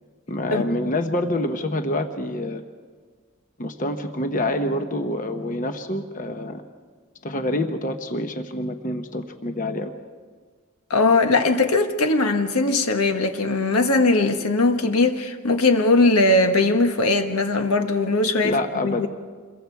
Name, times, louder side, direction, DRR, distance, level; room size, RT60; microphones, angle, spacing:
voice 1, 0.3-2.6 3.6-6.6 7.2-9.9 18.4-19.1, left 1 dB, 35° left, 7 dB, 1.0 m, -26 dB
voice 2, 10.9-19.1, left 2 dB, 85° left, 6 dB, 1.5 m, -20 dB
27.0 x 22.5 x 4.7 m, 1.5 s
head